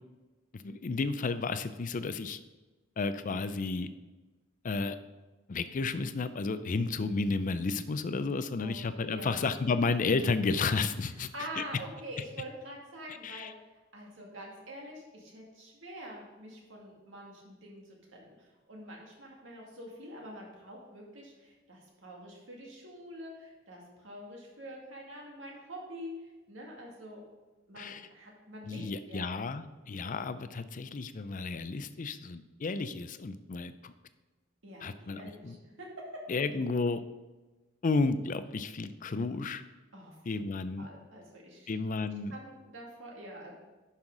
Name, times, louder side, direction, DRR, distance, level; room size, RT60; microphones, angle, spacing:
voice 1, 0.5-2.4 3.0-3.9 4.6-5.0 5.5-11.6 13.2-13.5 27.8-28.1 28.6-33.9 34.8-35.6 36.3-37.0 37.8-39.6 40.3-40.9 41.7-42.3, left 3 dB, 45° left, 12 dB, 0.4 m, -32 dB
voice 2, 9.1-9.5 11.3-13.5 13.9-26.1 26.5-27.2 27.7-29.3 34.6-36.0 39.9-40.4 40.8-41.7 42.3-43.5, right 1 dB, 75° right, -1 dB, 2.1 m, -46 dB
10.5 x 5.7 x 3.8 m, 1.2 s
head